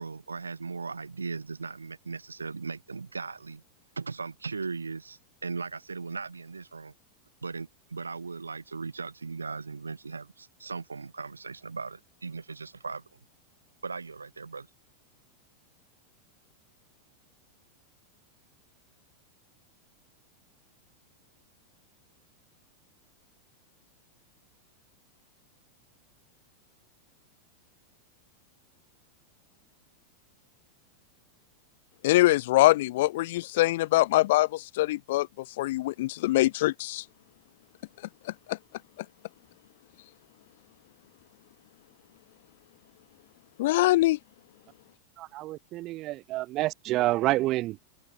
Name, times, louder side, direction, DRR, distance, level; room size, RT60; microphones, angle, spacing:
voice 1, 0.0-3.6 4.0-6.9 7.4-13.0 13.8-14.7, right 4 dB, 75° right, 5.7 m, -38 dB
voice 2, 32.0-35.3 35.6-37.0 38.5-38.6 43.6-44.2, left 17 dB, 55° left, 0.9 m, -23 dB
voice 3, 45.2-47.8, right 17 dB, 35° right, 1.1 m, -28 dB
figure-of-eight pair, 90°, 0 cm